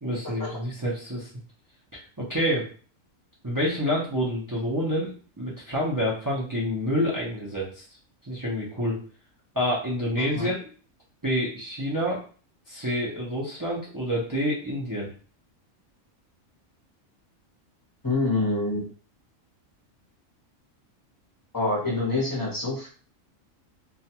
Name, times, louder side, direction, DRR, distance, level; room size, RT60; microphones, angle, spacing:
voice 1, 0.0-1.3 1.9-2.7 3.4-7.8 8.2-9.0 9.6-10.6 11.2-12.2 12.7-15.1, equal, 30° right, -5 dB, 0.3 m, -28 dB
voice 2, 18.0-18.9 21.5-22.9, left 2 dB, 20° left, -4 dB, 0.7 m, -26 dB
2.4 x 2.2 x 2.8 m, 0.40 s
omnidirectional pair, 1.4 m